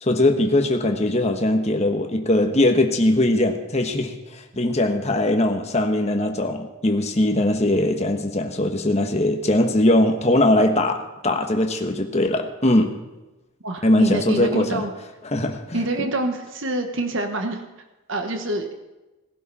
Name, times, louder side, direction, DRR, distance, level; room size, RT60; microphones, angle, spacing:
voice 1, 0.0-13.0 13.8-14.8 15.2-15.8, left 1 dB, 30° left, 4 dB, 1.2 m, -20 dB
voice 2, 13.6-14.9 15.7-17.6 18.1-18.7, right 1 dB, 60° right, 5 dB, 1.5 m, -26 dB
18.5 x 12.0 x 4.2 m, 1.1 s
head